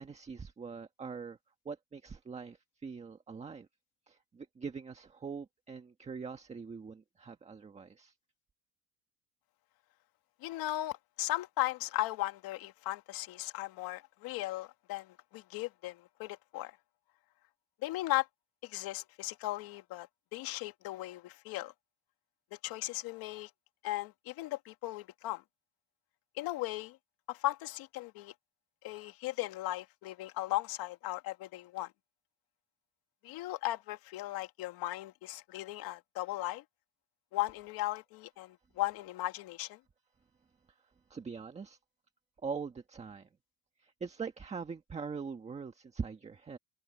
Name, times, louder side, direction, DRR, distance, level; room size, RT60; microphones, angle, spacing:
voice 1, 0.0-1.4 1.6-3.7 4.1-8.1 40.7-40.8 41.1-41.8 42.4-43.3 43.8-46.6, right 5 dB, 20° right, 1.5 m, -42 dB
voice 2, 10.4-16.8 17.8-18.3 18.6-21.7 22.5-23.5 23.8-25.4 26.3-27.0 27.3-28.3 28.8-31.9 33.2-36.6 37.3-39.8, left 17 dB, 75° left, 2.4 m, -37 dB
cardioid pair, 165°, 36 cm